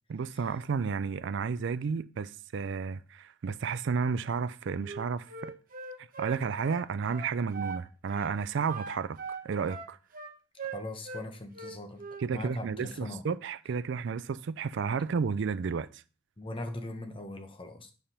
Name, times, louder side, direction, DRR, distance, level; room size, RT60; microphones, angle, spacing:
voice 1, 0.1-5.5 6.0-9.2 9.4-10.0 12.2-16.0, right 5 dB, 65° right, 0.4 m, -32 dB
Wind instrument woodwind instrument, 4.8-7.8 8.1-8.4 8.7-11.2 11.5-12.3, right 5 dB, 45° right, 1.0 m, -40 dB
voice 2, 10.7-12.0 12.3-13.3 16.4-17.9, left 1 dB, 25° left, 1.0 m, -40 dB
8.8 x 3.5 x 5.7 m
head